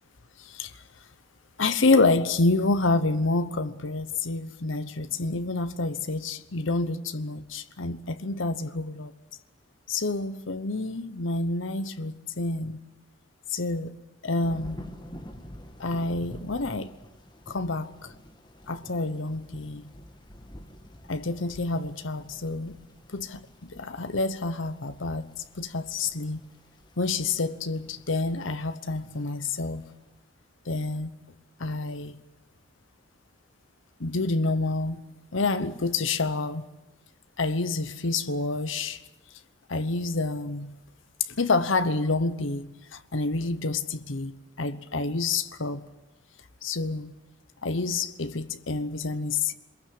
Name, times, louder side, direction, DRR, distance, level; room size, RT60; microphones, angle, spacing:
voice 1, 0.4-0.8 1.6-9.1 9.9-12.8 13.5-13.9 14.2-14.8 15.8-16.9 17.5-18.1 18.7-19.9 21.1-22.7 23.1-25.3 25.5-26.4 27.0-29.8 30.6-31.1 31.6-32.2 34.0-35.0 35.3-36.7 37.4-39.0 39.7-40.7 41.3-44.3 44.6-45.8 46.6-47.1 47.6-49.5, left 3 dB, 80° left, 1.0 m, -28 dB
Thunder / Rain, 14.3-29.9, equal, 20° left, 1.8 m, -48 dB
23.5 x 21.5 x 8.6 m
head